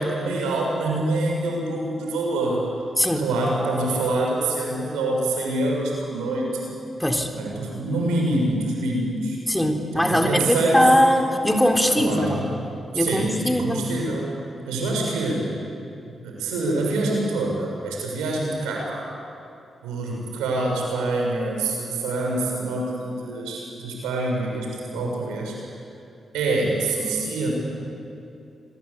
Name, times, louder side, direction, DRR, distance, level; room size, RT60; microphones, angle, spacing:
voice 1, 0.0-2.6 3.1-6.7 7.3-9.4 9.9-10.9 11.9-12.6 12.9-14.3 14.6-15.5 16.2-19.1 19.8-25.5 26.3-27.5, right 2 dB, 85° right, -1 dB, 6.4 m, -25 dB
voice 2, 3.0-3.3 7.0-7.3 9.5-12.4 12.9-13.9 24.9-25.1, equal, 10° left, 4 dB, 3.8 m, -21 dB
27.5 x 23.0 x 8.6 m, 2.6 s
hypercardioid pair, 40°, 0 cm